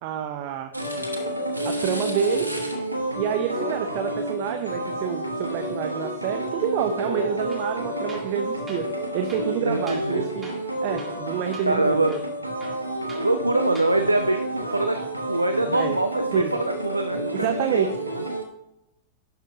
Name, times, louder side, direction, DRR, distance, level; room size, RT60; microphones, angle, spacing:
voice 1, 0.0-0.7 1.6-2.6 3.1-8.9 9.1-10.5 10.8-12.2 15.7-16.0 16.3-16.5 17.3-17.9, right 9 dB, 45° right, 7 dB, 0.6 m, -28 dB
sound 1, 0.7-18.5, right 1 dB, 90° left, 1.1 m, -30 dB
Tools, 7.5-7.7 8.1-8.4 8.7-8.8 9.3-10.1 10.4-10.7 11.0-11.3 11.5-11.7 12.1-13.3 13.7-14.0, right 2 dB, 15° right, 1.9 m, -44 dB
voice 2, 9.6-10.3 11.7-12.2 13.2-15.0 15.3-17.9, right 2 dB, 85° right, 8 dB, 0.4 m, -24 dB
11.5 x 5.8 x 2.8 m, 0.84 s
figure-of-eight pair, 90°, 0 cm